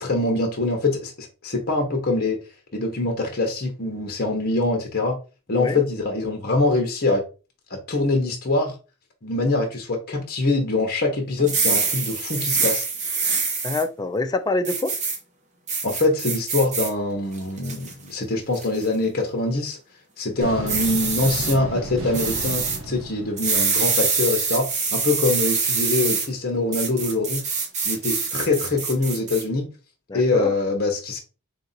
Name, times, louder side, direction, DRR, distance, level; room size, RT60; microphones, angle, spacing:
voice 1, 0.0-2.4 2.7-5.2 5.5-7.2 7.7-8.7 9.2-12.8 15.8-19.8 20.2-27.4 27.8-29.7 30.1-31.2, left 2 dB, 45° left, 0.9 m, -24 dB
sound 1, 11.4-13.8 14.6-15.2 15.7-16.9 17.4-17.9 18.5-18.8 20.7-21.5 22.1-22.8 23.4-26.3 26.7-29.4, right 5 dB, 30° right, 0.9 m, -25 dB
voice 2, 13.6-14.9 20.4-20.5 30.1-30.5, left 2 dB, 20° left, 0.3 m, -25 dB
sound 2, 20.4-24.4, right 1 dB, 60° right, 1.0 m, -33 dB
3.6 x 2.7 x 4.0 m
head